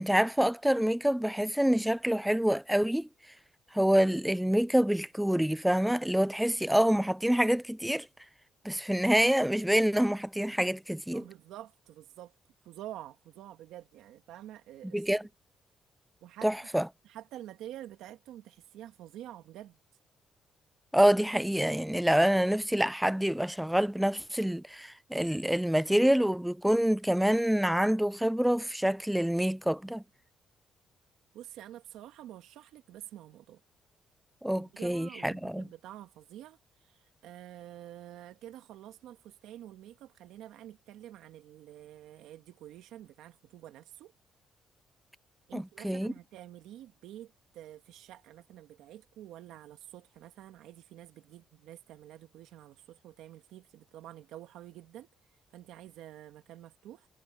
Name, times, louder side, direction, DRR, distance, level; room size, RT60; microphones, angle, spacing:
voice 1, 0.0-3.1 3.7-8.1 8.6-11.2 14.9-15.3 16.4-16.9 20.9-30.0 34.4-35.6 45.5-46.1, equal, 5° right, 0.5 m, -26 dB
voice 2, 11.1-12.3 12.6-15.0 16.2-19.8 31.3-33.6 34.5-44.1 45.5-55.1 55.5-57.1, right 12 dB, 90° right, 1.9 m, -48 dB
cardioid pair, 90°, 0 cm